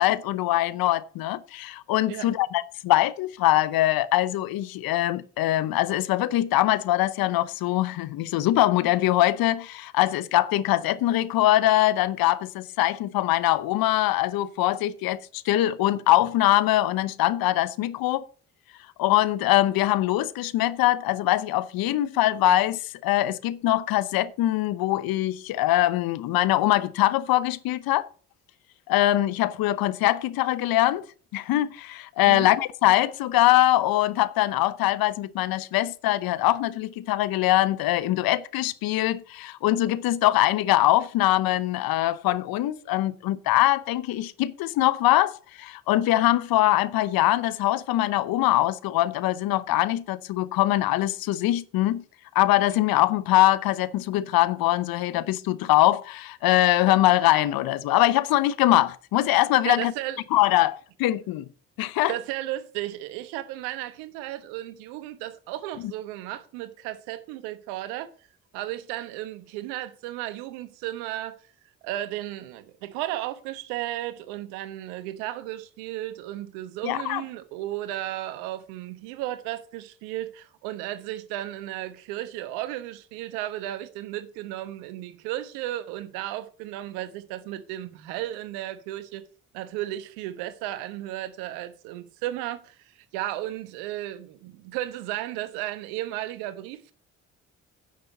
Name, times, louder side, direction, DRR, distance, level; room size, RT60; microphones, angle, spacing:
voice 1, 0.0-18.2 19.0-28.1 28.9-31.0 31.3-52.0 52.3-59.9 60.3-61.5 61.8-62.1 76.8-77.2, left 15 dB, 65° left, 0.8 m, -23 dB
voice 2, 59.6-60.2 62.1-68.1 68.5-71.4 71.8-89.2 89.5-92.8 93.1-96.9, right 14 dB, 80° right, 1.1 m, -34 dB
10.5 x 6.6 x 5.3 m
hypercardioid pair, 50°, 38 cm